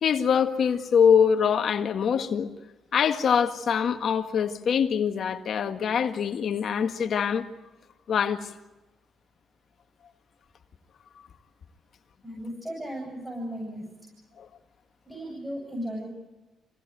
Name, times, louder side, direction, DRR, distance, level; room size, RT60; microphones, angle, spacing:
voice 1, 0.0-2.5 2.9-7.5 8.1-8.5 14.4-14.5, left 7 dB, 60° left, 1.7 m, -24 dB
voice 2, 12.2-13.8 15.0-16.1, equal, 5° right, 8.0 m, -35 dB
26.0 x 17.5 x 9.3 m
cardioid pair, 90°, 0 cm